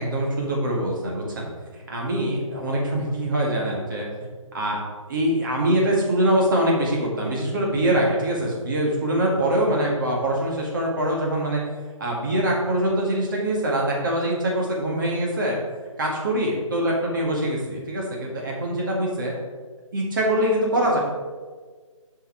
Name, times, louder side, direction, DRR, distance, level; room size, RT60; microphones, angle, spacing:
voice 1, 0.0-1.5 1.9-4.1 4.5-4.8 5.1-11.6 12.0-15.6 16.0-19.3 19.9-21.0, right 1 dB, 40° right, -2 dB, 2.0 m, -23 dB
7.2 x 5.7 x 4.9 m, 1.5 s
figure-of-eight pair, 150°, 17 cm